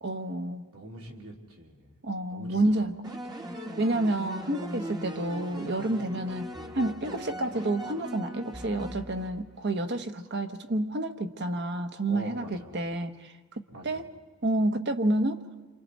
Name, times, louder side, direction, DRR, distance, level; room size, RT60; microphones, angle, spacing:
voice 1, 0.0-0.6 2.0-3.2 3.8-6.5 6.7-13.3 13.8-14.1 14.4-15.4, right 1 dB, 50° right, 7 dB, 1.1 m, -29 dB
voice 2, 0.7-2.0 2.3-2.8 12.1-12.7 13.7-14.0, right 1 dB, 80° right, -1 dB, 3.1 m, -44 dB
sound 1, 3.0-9.7, equal, 20° right, 1.1 m, -40 dB
29.5 x 24.5 x 4.1 m, 1.4 s
head